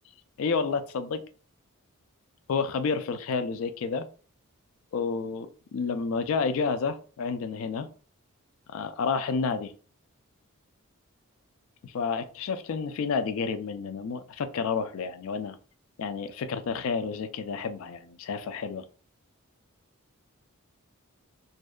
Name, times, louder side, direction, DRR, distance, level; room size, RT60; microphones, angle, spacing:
voice 1, 0.4-1.2 2.5-4.1 4.9-7.9 8.7-9.7 11.8-15.6 16.0-18.8, left 5 dB, 65° left, 10 dB, 0.3 m, -30 dB
2.6 x 2.1 x 2.3 m, 0.40 s
head